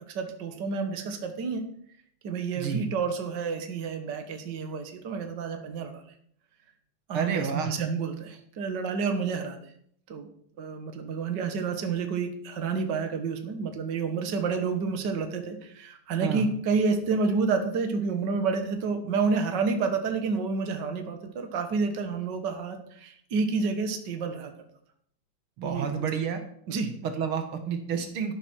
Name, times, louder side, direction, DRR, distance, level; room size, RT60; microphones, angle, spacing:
voice 1, 0.1-1.6 2.2-6.0 7.1-9.6 10.1-10.3 10.6-24.5 25.6-26.1 26.7-26.9, right 4 dB, 60° right, 6 dB, 2.0 m, -29 dB
voice 2, 7.1-7.7 16.2-16.5 25.6-26.4 27.0-28.3, right 6 dB, 85° right, 6 dB, 2.3 m, -29 dB
13.0 x 11.0 x 4.6 m, 0.64 s
omnidirectional pair, 2.3 m